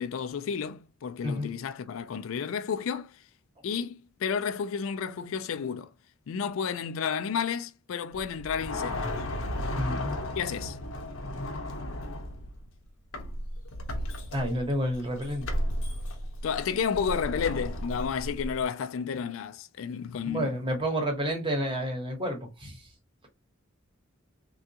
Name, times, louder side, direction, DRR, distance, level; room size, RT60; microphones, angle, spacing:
voice 1, 0.0-3.2 3.6-5.9 6.3-9.3 10.3-10.8 16.4-20.6, left 6 dB, 70° left, 0.4 m, -31 dB
sound 1, 8.1-12.7 13.1-18.6, left 1 dB, 90° left, 0.8 m, -34 dB
voice 2, 9.8-10.2 14.3-15.6 20.2-22.9, equal, 25° right, 1.0 m, -30 dB
3.5 x 2.3 x 2.8 m
head